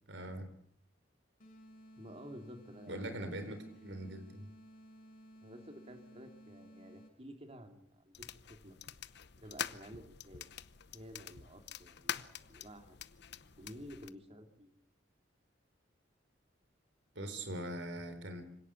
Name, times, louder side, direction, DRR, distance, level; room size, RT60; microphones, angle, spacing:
voice 1, 0.1-0.5 2.9-4.5 17.1-18.4, right 1 dB, 70° right, 9 dB, 4.0 m, -42 dB
sound 1, 1.4-7.4, equal, 50° left, 7.2 m, -57 dB
voice 2, 2.0-3.8 5.4-8.8 9.3-10.5 10.9-13.0 13.6-14.7, equal, 35° right, 5 dB, 3.1 m, -52 dB
sound 2, 8.1-14.1, left 9 dB, 65° left, 0.9 m, -45 dB
25.5 x 17.5 x 8.5 m, 0.65 s
head